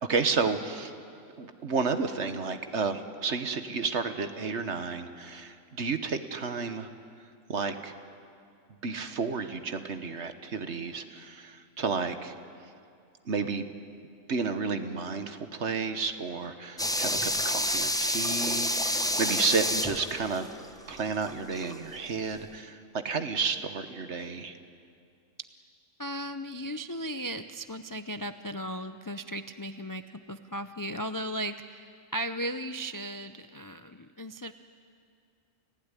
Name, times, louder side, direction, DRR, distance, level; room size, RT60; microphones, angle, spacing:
voice 1, 0.0-0.9 1.4-6.9 7.5-7.9 8.8-12.3 13.2-13.7 14.3-20.5 20.9-24.6, right 4 dB, 60° right, 8 dB, 1.5 m, -31 dB
sound 1, 16.8-21.8 22.1-22.2, left 1 dB, 5° left, 0.7 m, -29 dB
voice 2, 26.0-34.5, right 1 dB, 30° left, 9 dB, 0.3 m, -36 dB
30.0 x 16.0 x 9.8 m, 2.4 s
omnidirectional pair, 1.4 m